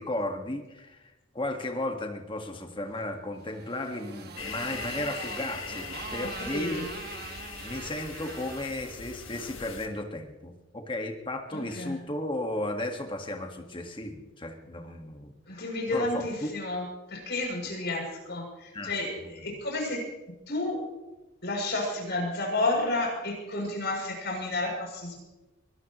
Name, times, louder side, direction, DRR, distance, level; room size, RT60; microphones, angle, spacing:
voice 1, 0.0-6.9 7.6-16.5 18.7-19.5, left 1 dB, 25° left, 4 dB, 1.7 m, -35 dB
Motorcycle, 3.4-9.8, right 4 dB, 50° right, 1.8 m, -43 dB
sound 1, 4.4-9.9, left 6 dB, 70° left, 1.8 m, -41 dB
voice 2, 6.2-6.9 11.5-12.0 15.5-20.0 20.5-20.8 21.4-25.2, left 2 dB, 55° left, -1 dB, 7.6 m, -31 dB
23.0 x 18.5 x 3.1 m, 1.0 s
head